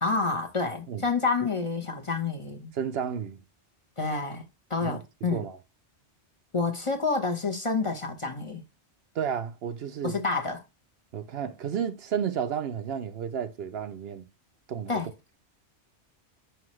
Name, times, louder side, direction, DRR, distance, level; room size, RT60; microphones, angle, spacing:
voice 1, 0.0-2.7 4.0-4.4 4.7-5.4 6.5-8.6 10.0-10.6 14.9-15.1, left 4 dB, 30° left, 0.9 m, -28 dB
voice 2, 2.7-3.4 4.8-5.0 5.3-5.6 9.1-10.2 11.1-14.3 14.7-15.0, right 8 dB, 65° right, 0.8 m, -32 dB
5.8 x 5.4 x 3.1 m
omnidirectional pair, 1.2 m